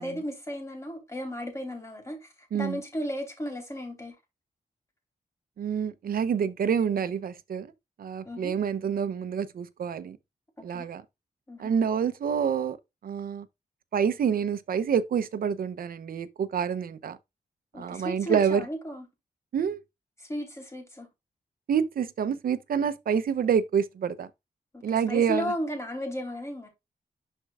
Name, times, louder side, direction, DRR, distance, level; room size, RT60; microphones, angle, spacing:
voice 1, 0.0-4.1 8.2-8.5 10.7-10.9 11.5-11.7 17.7-19.0 20.2-21.1 24.7-26.7, equal, 20° left, 3.1 m, -35 dB
voice 2, 2.5-2.8 5.6-7.7 8.0-10.2 10.6-11.0 11.6-12.8 13.0-13.5 13.9-17.2 17.8-18.7 19.5-19.8 21.7-24.3 24.8-25.5, right 7 dB, 85° right, 0.7 m, -27 dB
11.0 x 4.4 x 2.4 m
wide cardioid pair, 130°, 15 cm